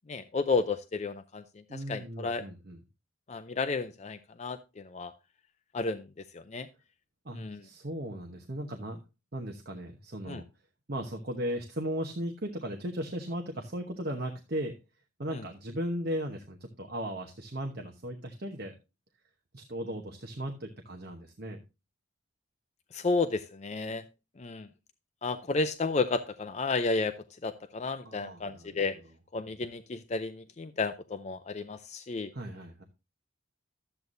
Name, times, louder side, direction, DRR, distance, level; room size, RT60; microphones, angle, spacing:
voice 1, 0.1-1.4 1.7-2.4 3.3-5.1 5.7-6.1 6.3-6.7 7.3-7.6 10.3-10.4 22.9-24.0 24.4-24.7 25.2-27.1 27.4-29.0 29.3-32.3, left 3 dB, 35° left, 10 dB, 0.4 m, -32 dB
voice 2, 1.7-2.8 7.2-9.0 9.3-10.4 10.9-14.7 15.2-18.7 19.5-21.6 28.0-28.8 32.3-32.8, equal, 50° right, 3 dB, 1.0 m, -37 dB
12.5 x 8.0 x 2.6 m, 0.28 s
head